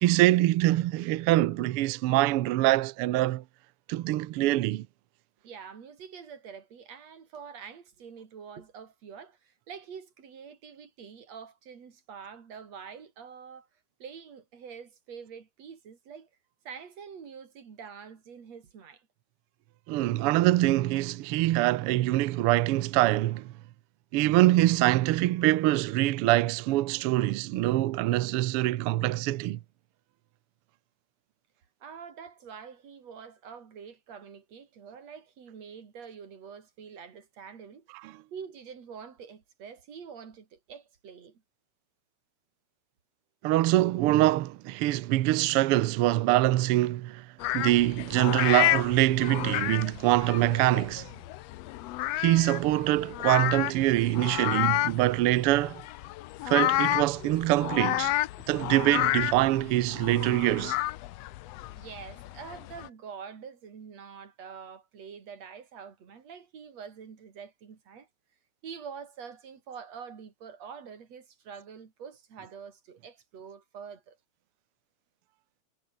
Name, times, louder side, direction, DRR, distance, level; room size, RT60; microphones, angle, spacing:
voice 1, 0.0-3.4 3.9-4.9 19.9-23.5 24.1-29.6 38.0-38.1 43.4-47.3 47.5-51.1 52.1-55.8 56.5-58.1 58.5-60.8, right 16 dB, 80° right, 1.3 m, -24 dB
voice 2, 5.4-13.7 14.0-16.3 16.7-19.1 31.8-37.9 38.3-41.4 61.7-68.1 68.6-74.2, right 6 dB, 60° right, 4.0 m, -46 dB
sound 1, 47.4-62.9, left 16 dB, 75° left, 1.6 m, -31 dB
omnidirectional pair, 3.4 m